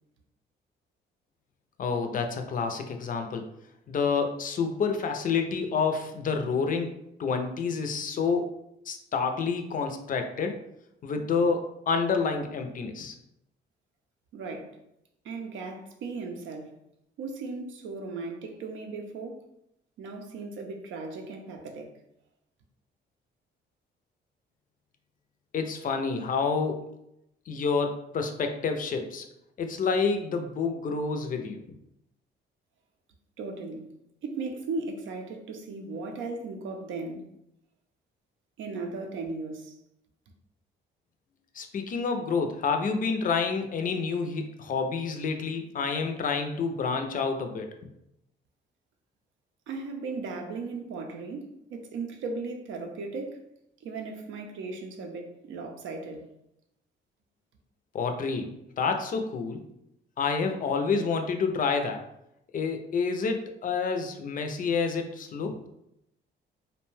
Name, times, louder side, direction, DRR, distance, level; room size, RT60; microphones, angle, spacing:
voice 1, 1.8-3.5 3.9-8.5 8.9-10.6 11.0-13.1 25.5-26.9 27.5-29.3 29.6-31.6 41.5-47.7 57.9-59.6 60.2-62.0 62.5-65.7, left 5 dB, 45° left, 0.4 m, -28 dB
voice 2, 14.3-14.8 15.2-16.8 17.2-19.4 20.0-21.9 33.4-33.9 34.2-37.3 38.6-39.8 49.7-53.4 53.8-56.3, right 3 dB, 75° right, 0.5 m, -37 dB
2.6 x 2.1 x 3.1 m
cardioid pair, 90°, 20 cm